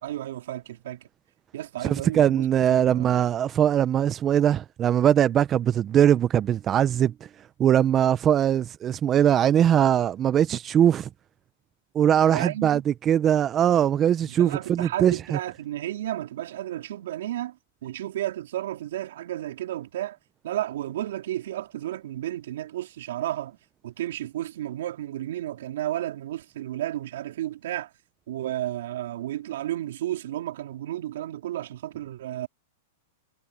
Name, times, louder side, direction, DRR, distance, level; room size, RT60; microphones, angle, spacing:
voice 1, 0.0-1.1 1.5-3.1 12.3-12.8 14.3-17.6 17.8-20.2 20.4-23.6 23.8-27.9 28.3-32.5, right 13 dB, 70° right, 3.4 m, -32 dB
voice 2, 1.8-7.1 7.6-11.1 11.9-15.4, right 10 dB, 25° right, 0.7 m, -21 dB
hypercardioid pair, 130°, 0 cm